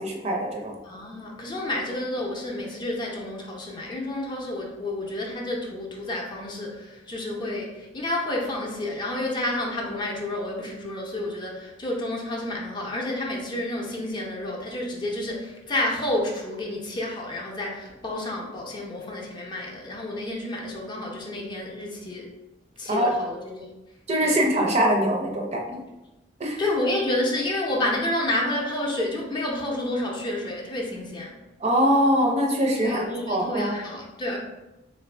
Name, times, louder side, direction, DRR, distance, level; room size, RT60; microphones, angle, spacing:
voice 1, 0.0-0.7 22.9-23.1 24.1-25.8 26.4-26.6 31.6-33.0 33.3-33.7, equal, 35° right, 1 dB, 0.5 m, -23 dB
voice 2, 0.8-22.3 22.8-23.7 24.2-24.4 26.6-31.3 32.8-34.4, left 1 dB, 25° left, -1 dB, 0.5 m, -30 dB
3.7 x 2.5 x 3.2 m, 1.0 s
head